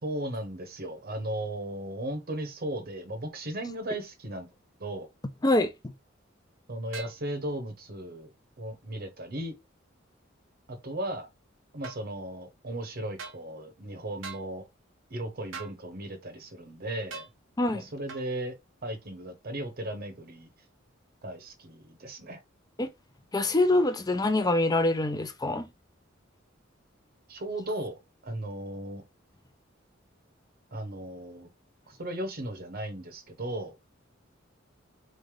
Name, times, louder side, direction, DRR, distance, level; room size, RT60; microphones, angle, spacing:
voice 1, 0.0-4.5 4.8-5.1 6.7-8.3 8.6-9.5 10.7-11.3 11.7-14.6 15.1-17.3 17.7-18.5 18.8-20.5 21.2-22.4 27.3-29.0 30.7-31.5 31.9-33.8, right 1 dB, 50° right, 1.0 m, -36 dB
voice 2, 5.4-5.9 17.6-17.9 22.8-22.9 23.3-25.7, left 2 dB, 20° left, 0.6 m, -25 dB
sound 1, 6.9-7.2 11.8-12.0 13.2-13.4 14.2-14.5 15.5-15.8 17.1-17.3 18.1-18.3, right 5 dB, 85° right, 1.1 m, -41 dB
3.8 x 3.4 x 3.6 m
head